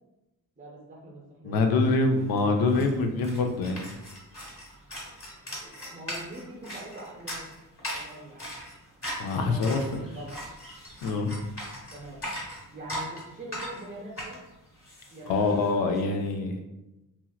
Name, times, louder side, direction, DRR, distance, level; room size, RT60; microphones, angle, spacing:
voice 1, 0.6-2.2 5.6-7.5 7.9-8.5 9.3-9.9 10.1-10.3 11.9-12.2 12.7-14.4 15.1-15.4, right 1 dB, 20° right, -4 dB, 0.6 m, -43 dB
voice 2, 1.4-3.8 9.2-10.1 11.0-11.3 15.3-16.6, left 3 dB, 75° left, 4 dB, 0.5 m, -25 dB
sound 1, 1.9-2.0 2.2-16.0, equal, 35° left, 1.3 m, -40 dB
2.9 x 2.8 x 2.3 m, 0.95 s
cardioid pair, 105°, 36 cm